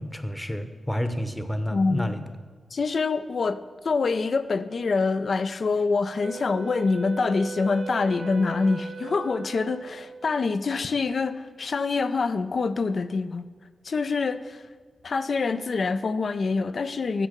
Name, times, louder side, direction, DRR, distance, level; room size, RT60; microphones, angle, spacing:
voice 1, 0.0-2.2, equal, 10° left, 9 dB, 0.9 m, -30 dB
voice 2, 1.7-2.1 2.7-13.5 13.8-14.6 15.0-17.3, left 4 dB, 60° left, 12 dB, 0.5 m, -25 dB
Wind instrument woodwind instrument, 6.2-10.5, right 5 dB, 90° right, 0.9 m, -38 dB
9.9 x 7.2 x 6.7 m, 1.5 s
cardioid pair, 75°, 0 cm